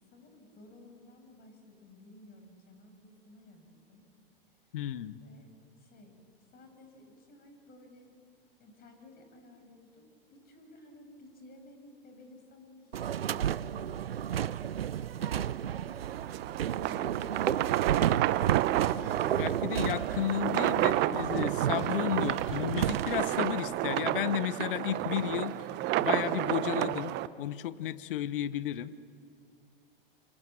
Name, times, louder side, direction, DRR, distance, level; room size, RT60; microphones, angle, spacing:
voice 1, 0.0-4.1 4.6-4.7 5.2-6.2 6.5-8.1 8.6-14.7 15.1-16.3 16.7-18.8, left 1 dB, 30° left, 5 dB, 6.1 m, -55 dB
voice 2, 4.7-5.2 19.4-25.5 26.0-28.9, left 11 dB, 65° left, 16 dB, 1.0 m, -33 dB
sound 1, 12.9-23.5, right 10 dB, 80° right, 0.6 m, -32 dB
FX - plastico silar movido por el viento, 16.0-27.3, right 15 dB, 35° right, 0.9 m, -31 dB
28.5 x 26.5 x 7.6 m, 2.3 s
hypercardioid pair, 100°, 29 cm